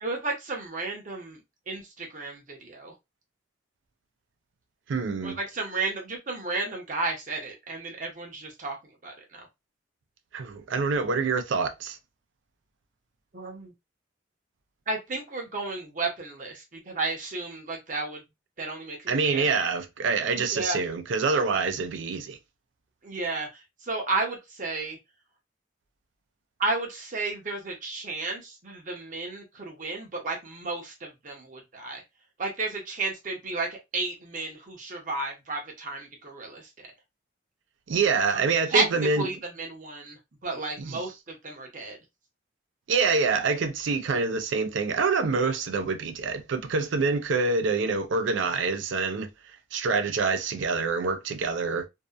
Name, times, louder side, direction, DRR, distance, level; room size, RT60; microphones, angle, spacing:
voice 1, 0.0-1.4 1.7-2.9 5.2-8.8 9.0-9.5 13.3-13.7 14.9-18.2 18.6-19.5 20.5-20.8 23.0-25.0 26.6-32.0 32.4-36.9 38.3-38.4 38.7-42.0, right 3 dB, 45° right, 0.7 m, -32 dB
voice 2, 4.9-5.4 10.3-12.0 19.1-22.4 37.9-39.3 40.8-41.0 42.9-49.3 49.7-51.9, right 4 dB, 85° right, 0.4 m, -26 dB
2.7 x 2.1 x 2.3 m
head